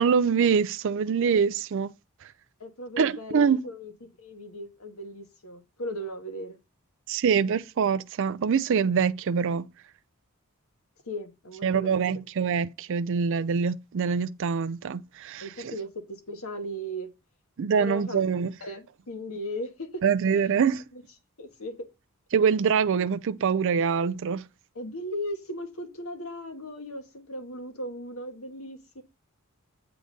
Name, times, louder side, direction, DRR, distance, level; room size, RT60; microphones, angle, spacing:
voice 1, 0.0-1.9 3.0-3.6 7.1-9.7 11.6-15.7 17.6-18.5 20.0-20.8 22.3-24.4, right 6 dB, 60° right, 0.4 m, -24 dB
voice 2, 2.6-3.9 4.2-6.6 11.0-12.0 15.4-17.1 17.8-18.2 18.6-20.0 20.3-20.6 20.9-21.0 21.4-21.9 24.7-29.0, equal, 85° left, 1.5 m, -37 dB
8.0 x 3.8 x 5.1 m
head